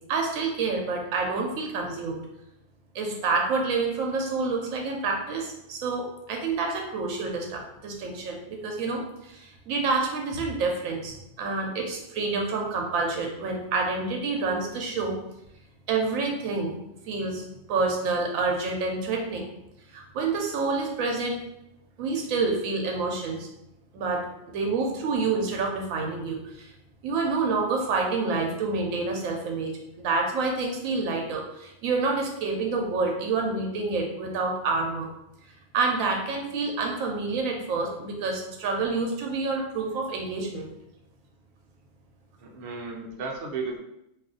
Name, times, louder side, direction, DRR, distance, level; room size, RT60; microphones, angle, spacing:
voice 1, 0.1-2.2 2.9-15.2 15.9-16.7 17.1-17.4 17.7-19.4 19.9-21.4 22.0-23.5 23.9-26.7 27.0-35.1 35.7-40.7, right 3 dB, 90° right, 1 dB, 1.0 m, -28 dB
voice 2, 42.4-43.8, right 4 dB, 65° right, 0 dB, 0.7 m, -34 dB
2.6 x 2.4 x 3.6 m, 0.83 s
omnidirectional pair, 1.4 m